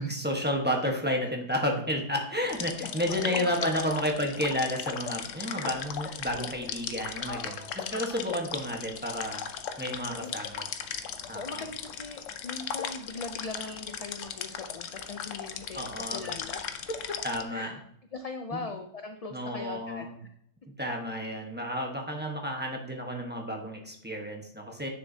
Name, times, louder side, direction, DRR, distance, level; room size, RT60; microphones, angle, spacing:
voice 1, 0.0-7.4 7.7-9.5 9.8-10.6 11.3-11.6 15.7-16.2 17.2-17.8 18.5-18.6 19.3-20.2 20.8-24.9, equal, 10° right, 0 dB, 1.2 m, -31 dB
sound 1, 2.5-17.4, left 8 dB, 90° left, 1.0 m, -37 dB
voice 2, 2.9-3.5 3.9-4.1 6.0-6.2 7.3-7.7 10.1-10.3 11.3-16.6 16.9-17.2 17.5-17.7 18.1-20.1, left 3 dB, 45° left, 6 dB, 0.5 m, -40 dB
sound 2, 3.7-4.1 5.5-6.1 7.9-8.3, left 2 dB, 30° left, 1.0 m, -45 dB
9.8 x 6.5 x 2.8 m, 0.71 s
omnidirectional pair, 1.3 m